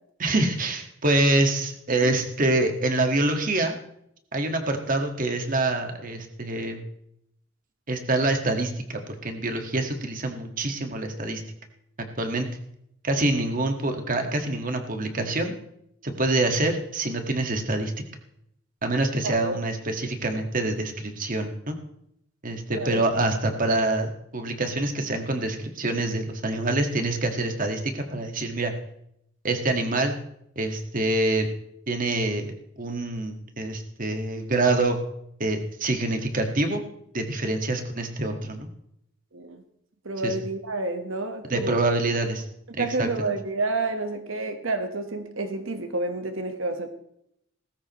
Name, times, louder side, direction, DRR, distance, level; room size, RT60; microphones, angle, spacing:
voice 1, 0.2-3.8 4.3-6.8 7.9-11.4 12.2-12.5 13.0-15.5 16.0-17.9 18.8-21.8 22.4-28.7 29.4-30.1 30.5-31.5 31.9-32.5 32.8-35.0 35.4-36.8 37.1-38.7 40.2-40.3 41.5-42.4 42.8-43.3, right 2 dB, 45° right, 5 dB, 1.7 m, -26 dB
voice 2, 19.2-19.6 22.8-23.0 39.3-39.6 40.0-41.9 42.8-46.9, right 2 dB, 85° right, 7 dB, 1.3 m, -29 dB
18.5 x 15.0 x 3.1 m, 0.74 s
head